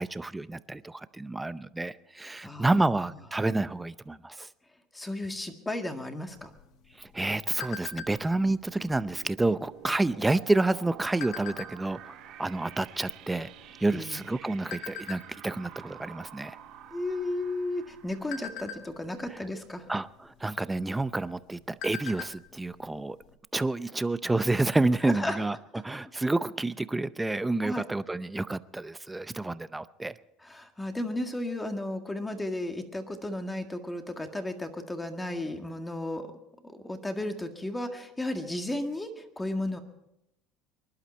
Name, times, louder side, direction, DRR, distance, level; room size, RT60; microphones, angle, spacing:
voice 1, 0.0-4.5 7.0-13.5 13.8-16.6 19.9-23.2 23.5-30.1, right 2 dB, 10° right, 14 dB, 0.6 m, -29 dB
voice 2, 2.4-2.8 3.1-3.2 4.9-6.5 13.9-14.2 16.9-19.9 25.0-25.4 27.6-27.9 30.4-36.3 36.6-39.8, left 1 dB, 10° left, 5 dB, 1.8 m, -34 dB
sound 1, 6.4-8.4 8.9-9.2 9.4-9.8 10.5-12.0 12.6-12.7 13.0-14.2 14.7-15.2 15.7-16.0 16.3-16.5 16.9-17.5 17.9-19.3 20.4-20.5 20.9-21.0 21.4-22.5 22.7-22.8 23.2-23.3, left 8 dB, 65° left, 1.5 m, -40 dB
sound 2, 8.2-19.6, right 11 dB, 60° right, 2.6 m, -50 dB
24.5 x 11.5 x 4.4 m, 0.83 s
cardioid pair, 125°, 0 cm